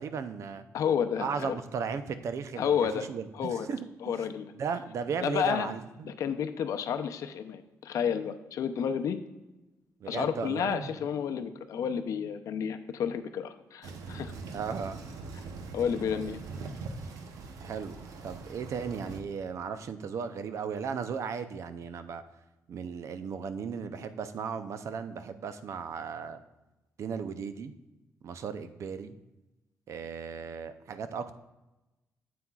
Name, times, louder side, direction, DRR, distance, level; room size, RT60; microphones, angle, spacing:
voice 1, 0.0-0.6 1.2-4.2 4.6-6.1 10.0-10.9 14.5-15.0 17.6-18.0 18.2-22.2 22.7-26.4 27.0-27.7 28.2-29.2 29.9-31.3, right 6 dB, 60° right, 11 dB, 0.5 m, -36 dB
voice 2, 0.7-1.6 2.6-3.1 3.3-3.7 4.0-4.5 5.2-5.7 6.0-9.2 10.1-14.3 15.7-16.4, left 7 dB, 75° left, 9 dB, 0.6 m, -31 dB
sound 1, 13.8-19.2, right 4 dB, 90° right, 0.8 m, -42 dB
9.5 x 7.7 x 2.3 m, 1.0 s
cardioid pair, 130°, 6 cm